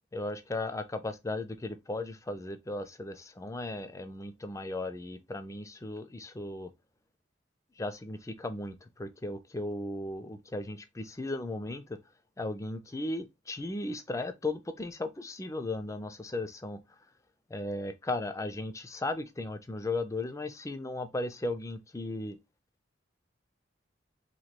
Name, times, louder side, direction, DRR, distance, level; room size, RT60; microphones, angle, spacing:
voice 1, 0.1-6.7 7.8-12.0 12.4-16.8 17.5-22.4, left 2 dB, 15° left, 0.4 m, -36 dB
3.0 x 2.6 x 4.2 m
head